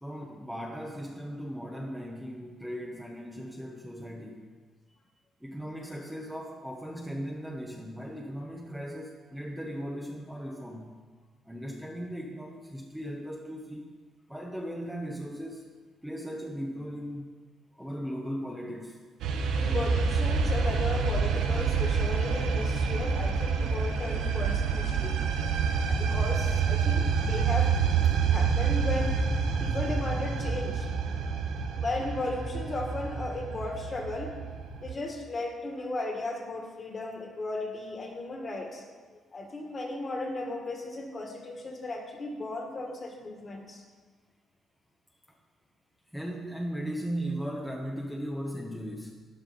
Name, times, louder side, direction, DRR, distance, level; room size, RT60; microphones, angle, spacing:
voice 1, 0.0-4.4 5.4-11.0 11.4-13.9 14.3-15.6 16.0-17.3 17.7-19.0 45.3-45.4 46.1-49.1, equal, ahead, -1 dB, 1.0 m, -37 dB
sound 1, 19.2-34.9, right 5 dB, 85° right, 1.1 m, -27 dB
voice 2, 19.6-25.2 25.8-27.7 28.3-29.2 29.6-30.9 31.2-31.3 31.8-34.3 34.8-38.8 39.1-43.8, left 2 dB, 30° left, 2 dB, 1.9 m, -35 dB
12.5 x 9.5 x 5.3 m, 1.5 s
cardioid pair, 145°, 0 cm